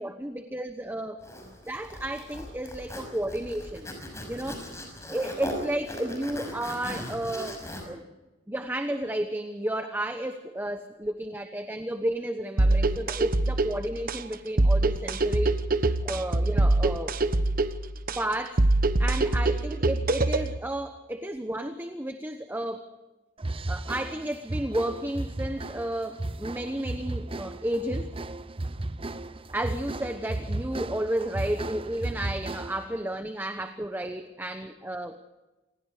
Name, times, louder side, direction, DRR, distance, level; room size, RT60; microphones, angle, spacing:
voice 1, 0.0-4.6 5.0-7.6 7.9-8.0 8.5-15.6 16.0-17.1 18.2-18.7 19.0-22.9 23.7-28.1 29.5-35.2, right 1 dB, 10° right, 8 dB, 1.1 m, -32 dB
Zipper (clothing), 1.2-7.8, equal, 15° left, 6.1 m, -39 dB
sound 1, 12.6-20.6, right 2 dB, 50° right, 1.2 m, -24 dB
sound 2, 23.4-33.0, right 2 dB, 30° right, 0.8 m, -35 dB
28.0 x 20.0 x 5.0 m, 1.1 s
head